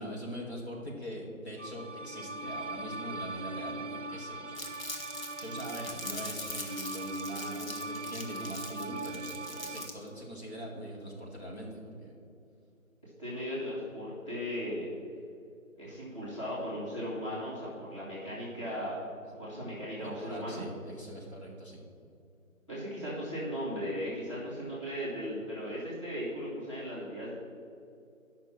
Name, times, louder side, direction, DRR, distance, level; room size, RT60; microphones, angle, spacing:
voice 1, 0.0-4.9 5.4-12.1 20.0-21.8, equal, 50° left, -3 dB, 2.0 m, -42 dB
sound 1, 1.6-9.9, right 2 dB, 60° right, 0.5 m, -40 dB
Crumpling crinkling, 4.5-10.1, left 2 dB, 75° left, 1.5 m, -42 dB
voice 2, 13.2-14.9 15.8-19.1 19.4-20.6 22.7-27.3, equal, 20° left, -9 dB, 1.9 m, -37 dB
9.4 x 6.0 x 5.9 m, 2.5 s
figure-of-eight pair, 170°, 41 cm